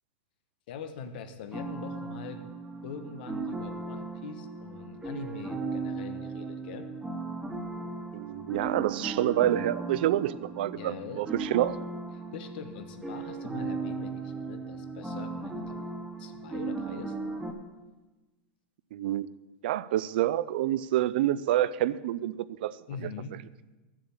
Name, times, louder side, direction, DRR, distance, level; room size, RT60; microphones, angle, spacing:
voice 1, 0.7-2.4 2.8-6.9 10.7-11.2 12.3-15.8 16.2-17.2 22.9-23.4, left 6 dB, 55° left, 8 dB, 1.2 m, -43 dB
sound 1, 1.5-17.5, right 3 dB, 5° right, 0.9 m, -37 dB
voice 2, 8.1-11.8 18.9-19.3 19.6-22.8, right 13 dB, 55° right, 17 dB, 0.4 m, -27 dB
13.0 x 7.5 x 7.1 m, 1.1 s
supercardioid pair, 175°, 6 cm